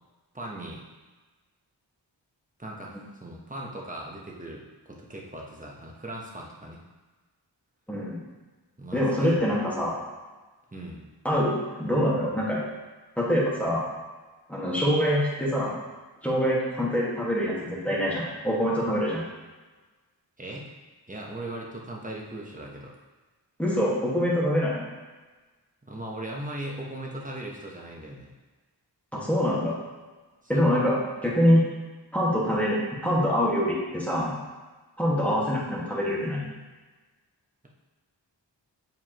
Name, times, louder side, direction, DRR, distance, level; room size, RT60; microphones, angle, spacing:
voice 1, 0.3-0.8 2.6-6.8 8.8-9.4 10.7-11.1 20.4-20.7 21.1-22.9 25.8-28.3 30.5-30.7, right 1 dB, 20° right, -2 dB, 1.0 m, -38 dB
voice 2, 7.9-8.2 8.9-10.0 11.3-12.6 13.2-13.8 14.5-15.7 16.2-19.2 23.6-24.8 29.1-29.8 30.5-31.6 32.1-34.3 35.0-36.4, equal, 5° left, -6 dB, 1.7 m, -25 dB
7.2 x 4.5 x 3.0 m, 1.3 s
wide cardioid pair, 60°, 45 cm